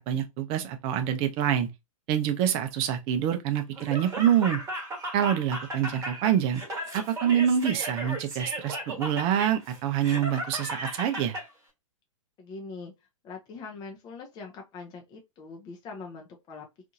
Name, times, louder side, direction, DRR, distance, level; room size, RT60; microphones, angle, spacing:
voice 1, 0.0-1.7 2.1-4.6 5.1-6.6 6.9-11.3, right 9 dB, 35° right, 0.5 m, -26 dB
Laughter, 3.8-11.5, right 1 dB, 15° right, 1.1 m, -36 dB
voice 2, 12.4-12.9 13.2-16.7, left 4 dB, 25° left, 0.5 m, -42 dB
2.7 x 2.5 x 2.5 m
figure-of-eight pair, 110°, 17 cm